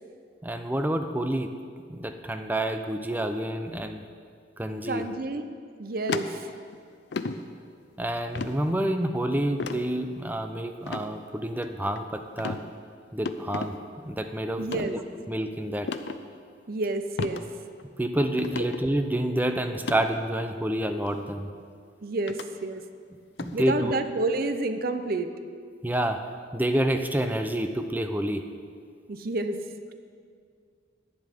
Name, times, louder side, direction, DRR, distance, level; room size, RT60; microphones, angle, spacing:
voice 1, 0.4-1.5 1.9-4.0 4.6-5.0 8.0-12.6 13.1-15.0 15.3-15.9 18.0-21.5 23.4-24.0 25.8-26.2 26.5-28.4, right 1 dB, 10° right, 7 dB, 0.5 m, -28 dB
voice 2, 4.9-5.5 5.8-6.5 14.6-15.0 16.7-17.4 18.6-18.7 22.0-22.8 23.5-25.3 29.1-29.6, right 2 dB, 55° right, 9 dB, 0.6 m, -29 dB
sound 1, 6.1-6.8 7.1-7.4 8.4-8.6 9.6-9.8 10.8-11.1 11.6-12.0 12.4-12.6 13.3-13.7 14.6-14.9 15.9-16.2 17.2-17.4 17.8-17.9 18.4-18.8 19.7-20.0 21.1-21.2 22.3-22.5 23.4-23.6, left 4 dB, 65° left, 0.5 m, -33 dB
11.0 x 9.6 x 5.1 m, 2.2 s
head